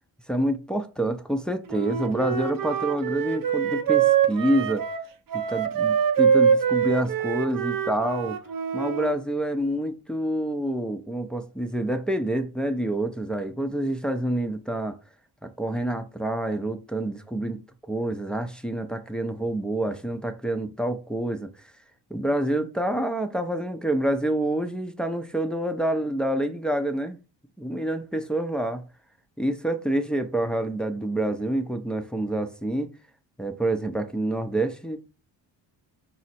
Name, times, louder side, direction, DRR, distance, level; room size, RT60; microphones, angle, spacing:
voice 1, 0.3-4.8 5.3-8.4 8.7-15.0 15.4-17.6 17.9-21.5 22.1-27.2 27.6-28.8 29.4-32.9 33.4-35.1, right 1 dB, ahead, 0.5 m, -27 dB
Wind instrument woodwind instrument, 1.7-9.1, right 8 dB, 50° right, 0.6 m, -24 dB
4.9 x 2.1 x 4.2 m
supercardioid pair, 65°, 45 cm